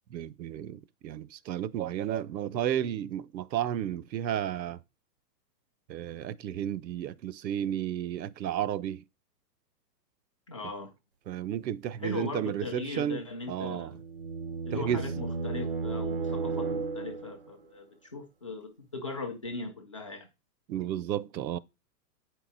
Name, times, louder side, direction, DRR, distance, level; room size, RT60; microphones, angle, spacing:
voice 1, 0.1-4.8 5.9-9.0 11.3-13.9 14.7-15.0 20.7-21.6, right 10 dB, 85° right, 0.8 m, -32 dB
voice 2, 10.5-10.9 12.0-14.0 14.6-20.3, left 3 dB, 20° left, 0.4 m, -39 dB
sound 1, 13.5-17.5, right 4 dB, 35° right, 0.4 m, -34 dB
9.0 x 4.7 x 3.9 m
hypercardioid pair, 165°, 50 cm